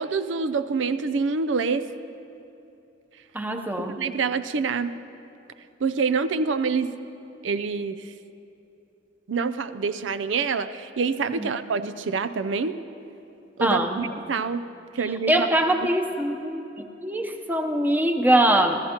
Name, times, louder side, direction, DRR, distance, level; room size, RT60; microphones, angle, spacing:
voice 1, 0.0-1.8 4.0-4.9 5.8-6.9 7.4-8.0 9.3-12.7 13.6-14.6 15.0-15.5, right 5 dB, 90° right, 12 dB, 0.5 m, -26 dB
voice 2, 3.3-4.0 11.4-11.5 13.6-14.0 15.3-18.8, right 1 dB, 10° right, 4 dB, 0.8 m, -23 dB
29.5 x 14.5 x 2.9 m, 2.9 s
head